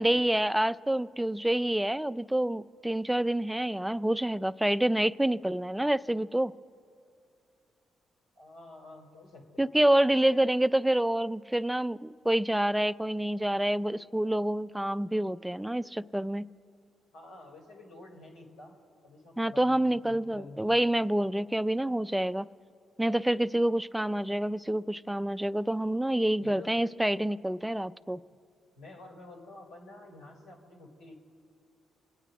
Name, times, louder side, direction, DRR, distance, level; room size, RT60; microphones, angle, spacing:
voice 1, 0.0-6.5 9.6-16.5 19.4-22.5 23.0-28.2, right 1 dB, 5° right, 16 dB, 0.4 m, -27 dB
voice 2, 8.3-9.7 10.1-10.6 17.1-18.7 19.0-19.8 20.1-20.8 26.4-26.8 28.7-31.2, left 3 dB, 90° left, 0 dB, 3.2 m, -49 dB
26.0 x 9.1 x 5.0 m, 2.6 s
supercardioid pair, 65°, 0 cm